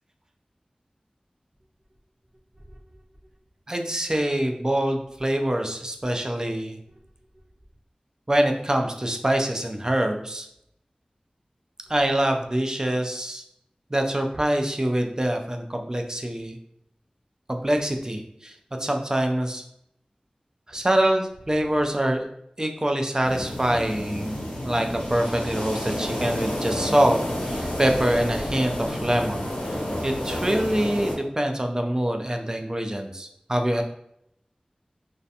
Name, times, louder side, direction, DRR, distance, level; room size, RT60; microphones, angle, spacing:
voice 1, 3.7-6.8 8.3-10.5 11.9-13.4 13.9-16.6 17.5-19.6 20.7-22.3 22.6-29.8 30.0-33.8, right 1 dB, 25° right, 3 dB, 0.4 m, -25 dB
sound 1, 23.2-31.1, left 1 dB, 90° left, 0.7 m, -30 dB
2.4 x 2.1 x 2.7 m, 0.74 s
wide cardioid pair, 45°, 2 cm